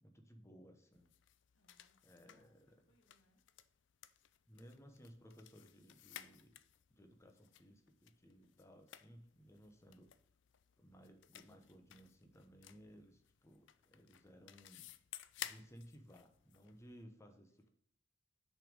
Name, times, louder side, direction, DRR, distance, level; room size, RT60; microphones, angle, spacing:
voice 1, 0.0-1.1 2.0-2.8 4.5-6.6 6.9-10.1 10.8-14.9 15.4-17.7, equal, 15° left, 5 dB, 0.9 m, -60 dB
sound 1, 0.9-17.0, left 12 dB, 60° left, 0.4 m, -56 dB
voice 2, 1.5-3.4 17.5-17.7, equal, 80° left, 4 dB, 1.5 m, -77 dB
6.4 x 5.3 x 5.1 m, 0.67 s
head